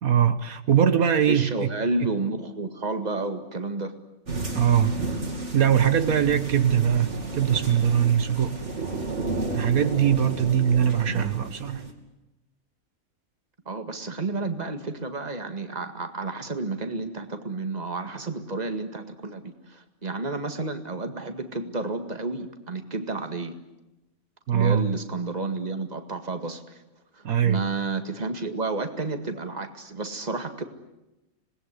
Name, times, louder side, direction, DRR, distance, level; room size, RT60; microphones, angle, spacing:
voice 1, 0.0-1.7 4.5-5.0 5.5-8.6 9.5-11.9 24.5-25.0 27.2-27.6, right 9 dB, 85° right, 10 dB, 1.7 m, -22 dB
voice 2, 1.3-3.9 11.1-11.3 13.7-23.6 24.5-26.8 27.1-30.6, right 3 dB, 30° right, 7 dB, 2.0 m, -31 dB
sound 1, 4.3-11.9, right 2 dB, 55° right, 3.3 m, -32 dB
26.5 x 20.0 x 9.8 m, 0.98 s
omnidirectional pair, 1.5 m